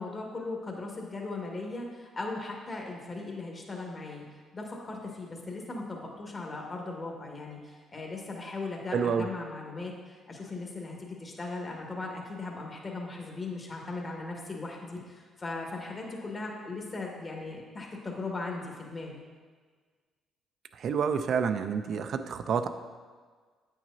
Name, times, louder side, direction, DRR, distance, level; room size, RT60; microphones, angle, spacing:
voice 1, 0.0-4.2 4.5-19.2, left 3 dB, 40° left, 0 dB, 1.6 m, -38 dB
voice 2, 8.9-9.2 20.8-22.7, right 6 dB, 60° right, 9 dB, 0.4 m, -28 dB
8.8 x 6.1 x 2.7 m, 1.5 s
supercardioid pair, 55°, 0 cm